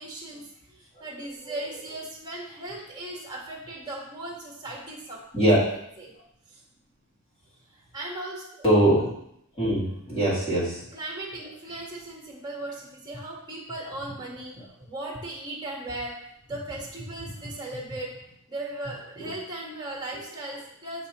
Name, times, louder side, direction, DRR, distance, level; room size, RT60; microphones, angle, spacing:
voice 1, 0.0-5.2 5.7-6.1 6.5-6.6 7.7-8.4 10.9-14.5 14.9-16.2 16.5-18.1 18.5-21.1, right 1 dB, 20° right, -2 dB, 1.4 m, -37 dB
voice 2, 8.6-9.1 9.6-10.8 19.2-19.3, right 1 dB, 25° left, -8 dB, 2.4 m, -22 dB
6.7 x 5.3 x 3.0 m, 0.74 s
head